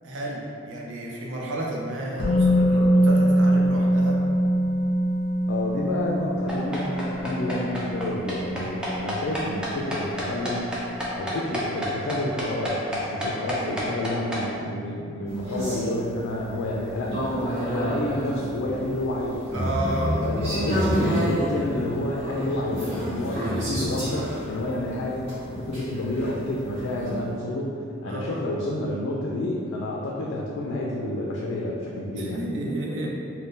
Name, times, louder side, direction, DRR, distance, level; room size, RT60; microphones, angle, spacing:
voice 1, 0.0-4.2 19.5-20.2 28.0-28.4 32.2-33.1, right 1 dB, 75° right, -2 dB, 0.5 m, -31 dB
Musical instrument, 2.2-10.1 10.4-10.5, equal, 50° left, 0.7 m, -23 dB
voice 2, 5.5-10.8 11.1-19.4 19.9-32.4, left 1 dB, 80° left, -3 dB, 0.3 m, -29 dB
sound 1, 6.5-14.4, left 1 dB, 5° right, 0.4 m, -30 dB
sound 2, 15.2-27.2, equal, 35° right, 1.1 m, -29 dB
2.5 x 2.1 x 3.6 m, 2.6 s
head